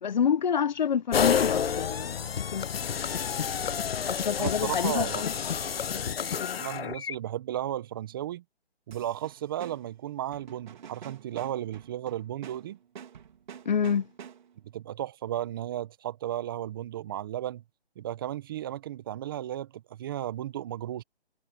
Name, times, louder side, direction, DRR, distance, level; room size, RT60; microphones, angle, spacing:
voice 1, 0.0-2.8 4.0-5.3 5.9-6.9 13.6-14.1, left 7 dB, 45° left, 1.3 m, -28 dB
sound 1, 1.1-7.1, left 8 dB, 65° left, 0.7 m, -29 dB
voice 2, 4.4-5.2 6.6-8.4 8.9-12.8 14.7-17.6 18.0-21.0, right 12 dB, 20° right, 1.0 m, -34 dB
sound 2, 8.9-14.7, right 8 dB, 45° right, 3.3 m, -48 dB
hypercardioid pair, 155°, 33 cm